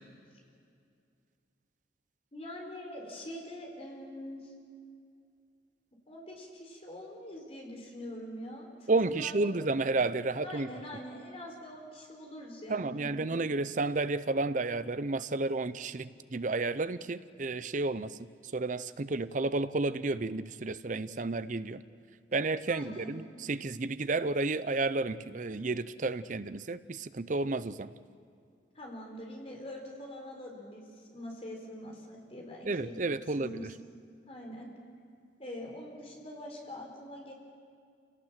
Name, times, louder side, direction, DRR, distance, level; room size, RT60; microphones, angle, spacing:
voice 1, 2.3-4.5 6.1-9.6 10.4-13.3 22.7-23.2 28.7-33.0 33.4-33.7 34.3-34.7 35.4-37.3, left 1 dB, 35° left, 0 dB, 4.4 m, -44 dB
voice 2, 8.9-10.7 12.7-18.1 18.5-21.8 22.3-27.9 32.7-33.5, right 3 dB, 45° right, 14 dB, 0.6 m, -31 dB
27.5 x 18.0 x 7.5 m, 2.3 s
head